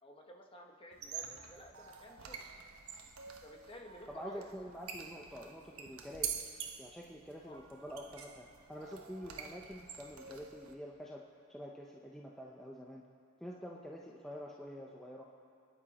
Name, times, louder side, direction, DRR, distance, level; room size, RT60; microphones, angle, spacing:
voice 1, 0.0-2.5 3.4-4.5 7.4-7.6, left 1 dB, 25° left, 1 dB, 1.3 m, -53 dB
sound 1, 0.9-10.7, right 7 dB, 90° right, 1.2 m, -47 dB
voice 2, 4.1-6.4 6.8-11.2 11.5-13.0 13.4-15.3, equal, ahead, -3 dB, 0.8 m, -47 dB
28.0 x 10.5 x 4.3 m, 2.3 s
head